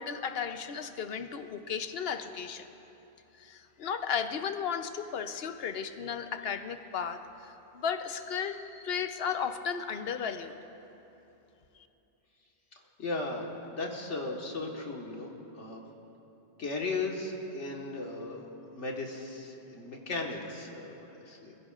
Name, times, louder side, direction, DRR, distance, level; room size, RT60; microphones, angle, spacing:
voice 1, 0.0-2.6 3.4-7.2 7.7-10.5, left 7 dB, 60° left, 9 dB, 1.0 m, -34 dB
voice 2, 13.0-13.5 13.8-15.8 16.6-18.5 18.7-21.5, left 3 dB, 85° left, 0 dB, 1.9 m, -36 dB
27.0 x 16.0 x 2.5 m, 3.0 s
omnidirectional pair, 1.2 m